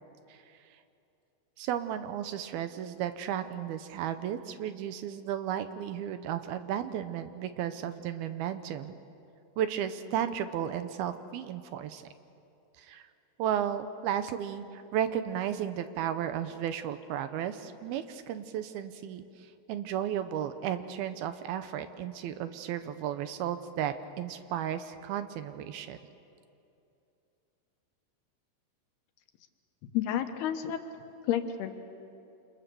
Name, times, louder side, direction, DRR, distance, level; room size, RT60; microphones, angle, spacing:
voice 1, 1.6-9.0 9.6-12.0 12.8-13.1 13.4-26.0, right 10 dB, 75° right, 10 dB, 2.6 m, -34 dB
voice 2, 29.9-30.8 31.3-31.7, left 10 dB, 75° left, 7 dB, 3.1 m, -30 dB
28.5 x 27.0 x 6.9 m, 2.7 s
omnidirectional pair, 4.7 m